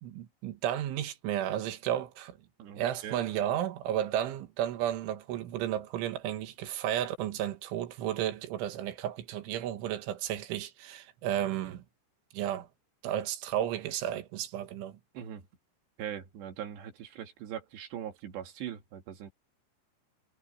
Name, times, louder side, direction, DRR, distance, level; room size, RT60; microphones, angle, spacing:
voice 1, 0.0-2.4 2.8-11.8 12.3-12.7 13.0-15.0, right 11 dB, 85° right, 4.0 m, -33 dB
voice 2, 2.6-3.2 15.1-15.4 16.0-19.3, right 10 dB, 70° right, 4.2 m, -41 dB
omnidirectional pair, 5.4 m